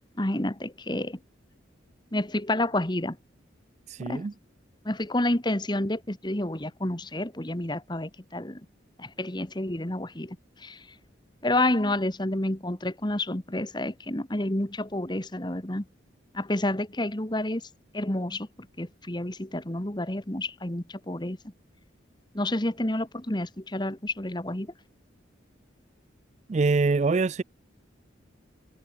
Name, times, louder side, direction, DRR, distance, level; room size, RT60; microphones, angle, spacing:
voice 1, 0.2-1.2 2.1-3.2 4.0-4.2 4.8-8.6 9.0-10.4 10.6-10.8 11.4-15.8 16.3-17.6 17.9-18.5 18.8-21.4 22.3-24.7, left 1 dB, 20° left, 1.5 m, -29 dB
voice 2, 3.9-4.3 26.5-27.4, right 4 dB, 35° right, 0.3 m, -24 dB
head